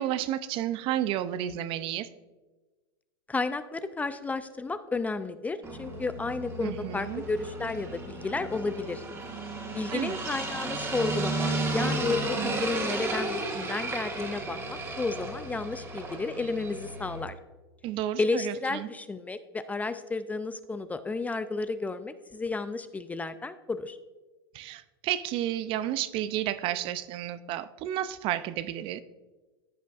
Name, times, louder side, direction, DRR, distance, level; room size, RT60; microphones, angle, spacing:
voice 1, 0.0-2.1 6.6-7.2 9.9-10.2 17.8-18.9 24.5-29.0, right 12 dB, 45° right, 14 dB, 0.5 m, -31 dB
voice 2, 3.3-9.0 9.7-17.4 18.2-24.0, left 3 dB, 10° left, 12 dB, 0.4 m, -32 dB
sound 1, 5.6-17.2, right 2 dB, 20° right, 1.8 m, -33 dB
14.5 x 5.7 x 2.4 m, 1.2 s
hypercardioid pair, 110°, 13 cm